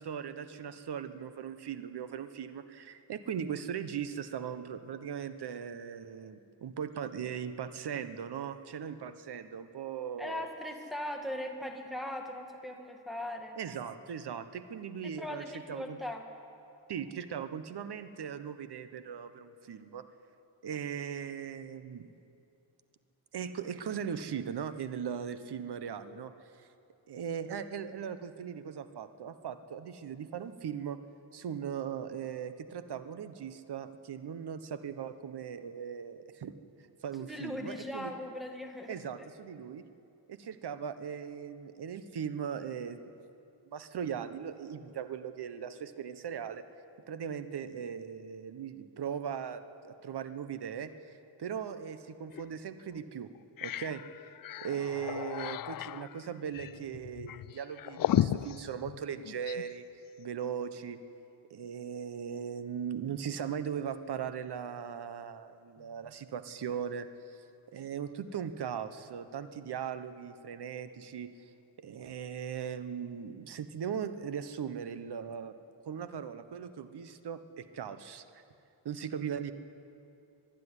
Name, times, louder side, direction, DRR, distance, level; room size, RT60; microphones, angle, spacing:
voice 1, 0.0-10.5 13.6-16.0 16.9-20.1 20.6-22.1 23.3-26.3 26.6-26.7 27.1-31.0 31.3-36.5 37.0-38.1 38.9-39.8 40.3-43.0 43.7-46.6 47.1-53.3 53.6-54.0 54.6-59.9 60.2-61.0 61.5-67.4 67.7-71.5 71.8-75.5 75.9-78.4 78.8-79.5, right 8 dB, 50° right, 11 dB, 1.2 m, -39 dB
voice 2, 10.2-13.6 15.2-16.2 37.3-39.3, left 1 dB, ahead, 2 dB, 2.0 m, -39 dB
sound 1, 52.3-52.5 52.9-53.0 53.3-59.7, left 12 dB, 45° left, 0.4 m, -35 dB
25.0 x 10.5 x 10.0 m, 2.6 s
cardioid pair, 115°, 50 cm